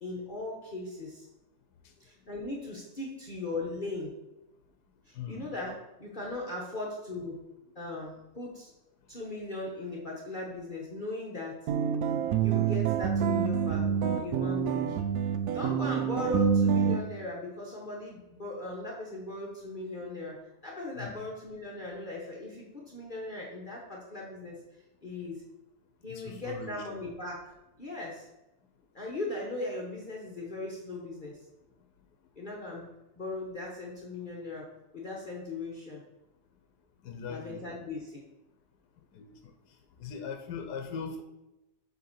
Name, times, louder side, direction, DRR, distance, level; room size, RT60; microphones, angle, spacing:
voice 1, 0.0-1.3 2.0-4.1 5.1-7.5 7.7-8.7 9.1-11.7 12.4-15.3 15.5-24.6 25.0-25.4 26.0-28.3 28.9-31.5 32.4-36.0 37.3-38.2, left 2 dB, 35° left, -2 dB, 1.1 m, -38 dB
voice 2, 5.2-5.5 21.0-21.2 26.1-26.7 37.0-37.6 39.2-39.3 40.0-41.2, left 6 dB, 85° left, 5 dB, 1.3 m, -39 dB
sound 1, 11.7-17.0, right 7 dB, 75° right, 1.1 m, -27 dB
7.8 x 3.6 x 5.7 m, 0.96 s
omnidirectional pair, 1.7 m